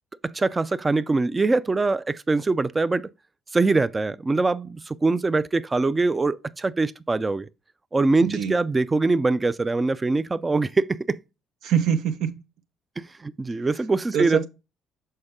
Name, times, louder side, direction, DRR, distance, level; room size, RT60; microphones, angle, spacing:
voice 1, 0.2-3.1 3.5-7.5 7.9-11.2 13.0-14.5, right 3 dB, 20° right, 0.4 m, -23 dB
voice 2, 8.2-8.5 11.6-12.4 14.1-14.5, right 8 dB, 75° right, 0.8 m, -24 dB
6.7 x 4.4 x 3.6 m
cardioid pair, 95°, 0 cm